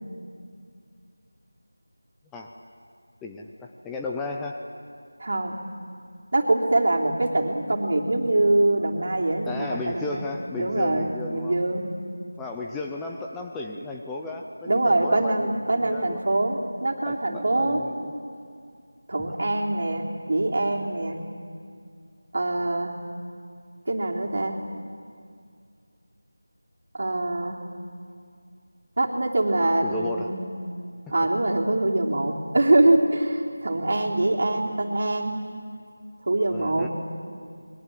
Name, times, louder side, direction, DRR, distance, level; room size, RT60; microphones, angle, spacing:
voice 1, 3.2-4.6 9.4-11.6 12.4-16.2 17.0-18.1 29.8-30.3 31.1-31.2 36.5-36.9, left 3 dB, 5° left, 0 dB, 0.5 m, -34 dB
voice 2, 5.2-5.6 6.3-10.3 10.6-11.9 14.7-17.8 19.1-21.2 22.3-22.9 23.9-24.6 27.0-27.6 29.0-30.4 31.1-35.4 36.2-36.9, right 2 dB, 45° right, 0 dB, 3.1 m, -24 dB
29.0 x 22.5 x 7.6 m, 2.3 s
figure-of-eight pair, 175°, 0 cm